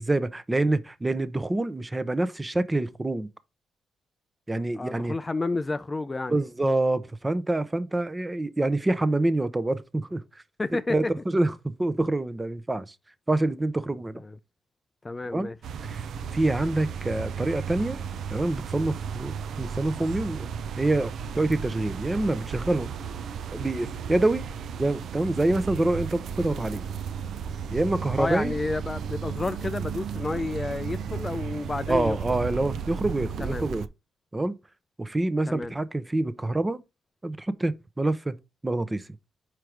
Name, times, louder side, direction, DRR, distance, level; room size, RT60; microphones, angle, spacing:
voice 1, 0.0-3.3 4.5-5.1 6.3-10.2 10.9-12.9 13.3-14.2 15.3-15.5 15.8-16.0 16.3-18.0 18.3-20.5 20.8-22.9 23.5-24.5 24.8-26.8 27.7-28.6 31.9-33.8 34.3-34.6 35.0-36.8 37.2-39.1, right 2 dB, 15° right, 0.7 m, -26 dB
voice 2, 4.8-6.4 10.6-11.0 14.2-14.4 15.0-15.6 28.2-32.2 33.4-33.7 35.5-35.7, left 3 dB, 20° left, 0.4 m, -30 dB
sound 1, 15.6-33.9, right 7 dB, 65° right, 0.5 m, -34 dB
4.7 x 4.6 x 5.0 m
cardioid pair, 90°, 0 cm